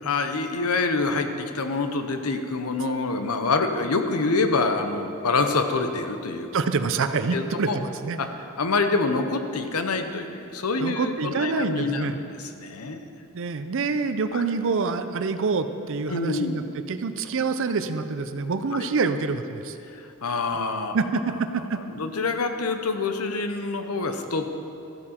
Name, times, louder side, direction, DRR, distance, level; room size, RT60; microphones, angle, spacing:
voice 1, 0.0-6.5 7.3-7.8 8.2-13.0 14.3-14.4 16.1-16.7 18.7-18.9 19.8-20.9 21.3-24.6, left 3 dB, 85° left, 7 dB, 0.8 m, -26 dB
voice 2, 6.5-8.2 10.8-12.1 13.3-19.8 20.9-21.2 21.5-21.8, right 4 dB, 60° right, 10 dB, 0.5 m, -26 dB
13.5 x 8.6 x 4.4 m, 2.7 s
head